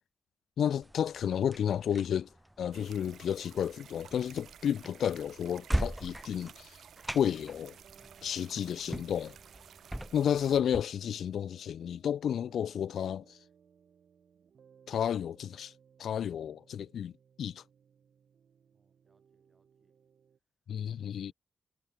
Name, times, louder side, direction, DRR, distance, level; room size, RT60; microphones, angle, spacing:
voice 1, 0.6-2.3 2.6-6.8 7.1-7.8 8.2-9.4 10.1-13.4 14.9-15.7 16.0-17.1 17.4-17.6 20.7-21.3, left 9 dB, 80° left, 0.3 m, -32 dB
sound 1, 0.8-10.8, right 1 dB, 5° right, 0.3 m, -40 dB
sound 2, 2.7-10.6, right 9 dB, 85° right, 4.8 m, -54 dB
sound 3, 7.6-20.4, right 7 dB, 65° right, 3.1 m, -63 dB
voice 2, 18.7-20.0 20.8-21.3, right 3 dB, 20° right, 7.2 m, -73 dB
wide cardioid pair, 125°, 0 cm